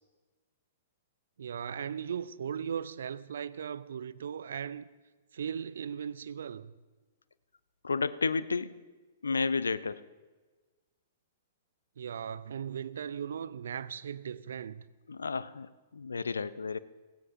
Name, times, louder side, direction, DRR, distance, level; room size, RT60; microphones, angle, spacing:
voice 1, 1.4-4.9 5.3-6.7 12.0-14.8, right 8 dB, 65° right, 0.4 m, -38 dB
voice 2, 7.8-8.8 9.2-10.0 15.1-16.8, left 4 dB, 75° left, 0.5 m, -32 dB
17.0 x 15.5 x 2.6 m
figure-of-eight pair, 110°, 0 cm